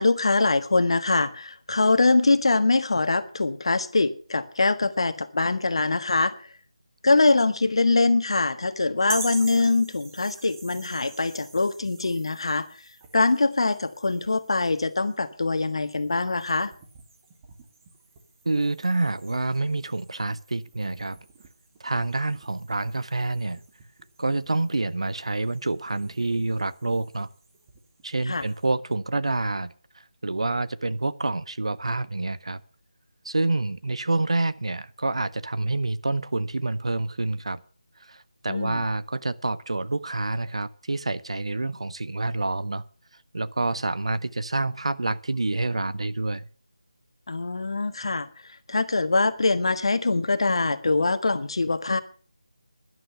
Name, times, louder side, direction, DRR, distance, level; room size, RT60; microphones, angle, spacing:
voice 1, 0.0-6.3 7.0-12.7 13.1-16.7 28.3-28.4 38.5-38.8 47.3-48.3 48.7-52.0, left 3 dB, 60° left, 1.5 m, -23 dB
sound 1, 9.0-28.7, right 4 dB, 25° right, 2.2 m, -46 dB
voice 2, 18.4-21.2 21.8-23.6 24.2-27.3 28.0-29.7 30.2-32.6 33.2-37.6 38.1-42.8 43.3-46.4, right 2 dB, 65° right, 0.8 m, -27 dB
11.5 x 11.0 x 6.7 m
figure-of-eight pair, 160°, 3 cm